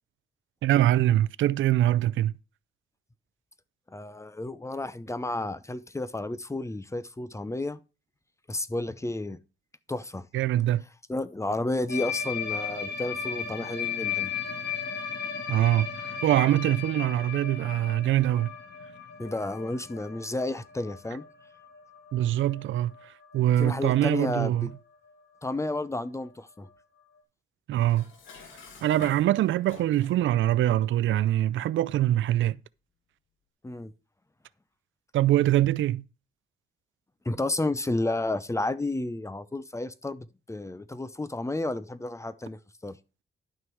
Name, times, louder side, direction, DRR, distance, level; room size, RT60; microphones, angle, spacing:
voice 1, 0.6-2.3 10.3-10.8 15.5-18.5 22.1-24.7 27.7-28.1 28.8-32.6 35.1-36.0, right 13 dB, 80° right, 0.4 m, -24 dB
voice 2, 3.9-7.8 8.5-9.4 9.9-10.3 11.1-14.3 19.2-21.2 23.6-24.7 25.4-26.7 33.6-33.9 37.2-43.0, left 2 dB, 15° left, 0.7 m, -31 dB
sound 1, 11.9-23.8 24.0-24.2 24.6-24.8 25.1-25.2 25.5-25.6 26.7-26.8, left 7 dB, 60° left, 1.9 m, -36 dB
Dishes pots and pans, 27.8-30.2, left 5 dB, 85° left, 2.6 m, -47 dB
11.5 x 6.1 x 4.6 m
cardioid pair, 85°, 20 cm